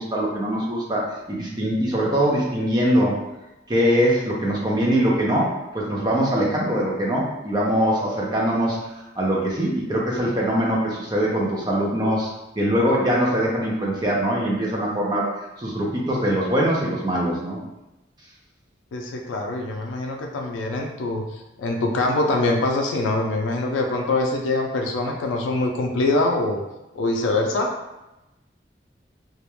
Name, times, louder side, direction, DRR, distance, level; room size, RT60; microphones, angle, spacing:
voice 1, 0.0-3.2 3.7-8.8 9.2-12.3 12.6-15.3 15.6-17.6, equal, 20° right, -3 dB, 0.4 m, -22 dB
voice 2, 18.9-26.6 26.9-27.7, left 2 dB, 85° left, 2 dB, 0.3 m, -24 dB
2.3 x 2.1 x 2.9 m, 0.98 s
head